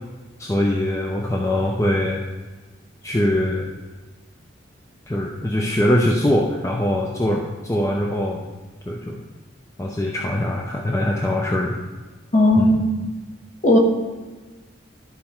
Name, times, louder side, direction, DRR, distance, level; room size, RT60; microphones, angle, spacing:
voice 1, 0.4-2.2 3.0-3.7 5.1-8.4 8.9-9.2 9.8-11.8 12.6-12.7, left 1 dB, 15° left, 0 dB, 0.5 m, -22 dB
voice 2, 12.3-12.9 13.6-13.8, left 1 dB, 40° left, 2 dB, 1.1 m, -15 dB
12.0 x 5.4 x 4.4 m, 1.3 s
head